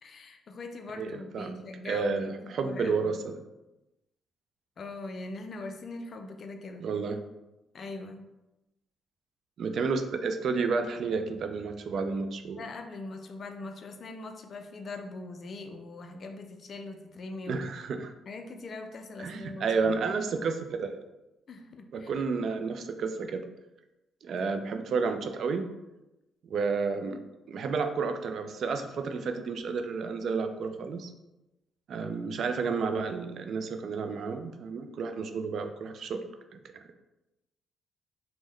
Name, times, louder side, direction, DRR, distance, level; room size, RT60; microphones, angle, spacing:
voice 1, 0.0-3.1 4.8-6.9 7.7-8.3 12.6-17.7 18.3-20.1 21.5-22.1 24.4-24.5, left 3 dB, 50° left, 5 dB, 0.3 m, -41 dB
voice 2, 0.9-1.5 1.8-3.3 6.8-7.2 9.6-12.6 17.5-18.1 19.2-21.0 21.9-23.4 24.2-25.7 26.4-27.2 27.5-31.1 31.9-36.2 36.5-36.6, right 4 dB, 60° right, 7 dB, 0.3 m, -31 dB
3.5 x 2.1 x 3.2 m, 0.99 s
cardioid pair, 90°, 0 cm